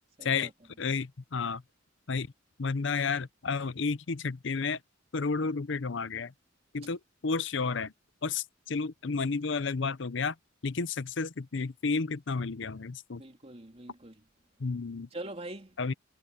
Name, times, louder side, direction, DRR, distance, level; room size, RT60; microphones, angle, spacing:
voice 1, 0.2-0.5 13.2-14.2 15.1-15.9, right 1 dB, 30° right, 3.1 m, -43 dB
voice 2, 0.8-1.6 2.1-2.3 2.6-4.8 5.1-6.3 6.7-7.9 8.2-10.3 10.6-13.2 14.6-15.1 15.8-15.9, left 4 dB, 60° left, 0.7 m, -31 dB
head